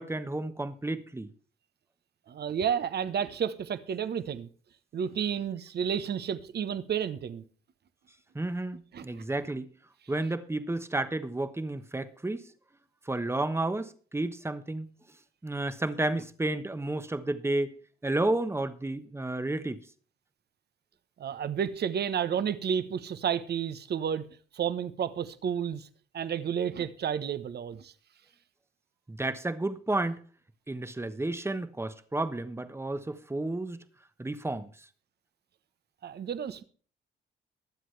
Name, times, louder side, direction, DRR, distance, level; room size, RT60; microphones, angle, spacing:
voice 1, 0.0-1.3 8.3-9.7 10.1-12.5 13.0-14.9 15.4-17.7 18.0-19.9 29.1-30.2 30.7-33.8 34.2-34.8, right 2 dB, 10° right, 1.2 m, -31 dB
voice 2, 2.3-4.5 4.9-7.4 8.9-9.0 21.2-24.2 24.5-25.9 26.1-27.9 36.0-36.6, right 8 dB, 55° right, 1.2 m, -31 dB
22.5 x 7.6 x 3.3 m
cardioid pair, 90°, 20 cm